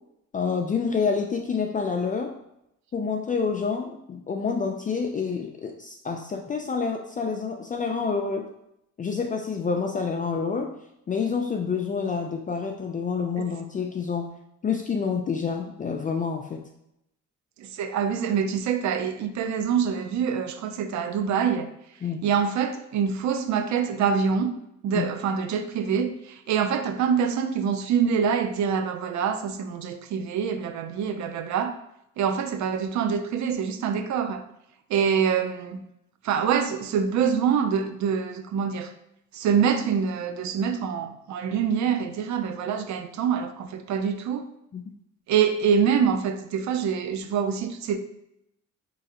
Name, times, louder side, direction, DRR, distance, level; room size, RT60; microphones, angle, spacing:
voice 1, 0.3-2.3 2.9-8.5 9.0-10.7 11.1-14.3 14.6-16.6 22.0-22.2 24.9-25.1 44.7-44.9, left 5 dB, 25° left, 2 dB, 0.4 m, -28 dB
voice 2, 17.6-21.7 22.2-24.5 24.8-31.8 32.2-34.4 34.9-35.8 36.2-38.9 39.3-44.5 45.3-48.0, right 7 dB, 70° right, 8 dB, 0.5 m, -25 dB
3.8 x 3.1 x 2.8 m, 0.80 s
cardioid pair, 90°, 30 cm